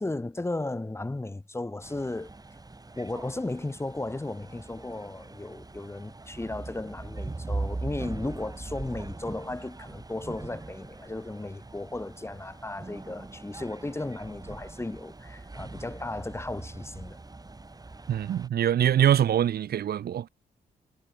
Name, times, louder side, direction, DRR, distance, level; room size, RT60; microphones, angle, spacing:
voice 1, 0.0-2.3 3.0-17.2, left 2 dB, 15° left, 1.3 m, -35 dB
sound 1, 1.8-18.5, right 3 dB, 20° right, 5.9 m, -41 dB
voice 2, 18.1-20.3, right 10 dB, 70° right, 1.2 m, -24 dB
cardioid pair, 75°, 17 cm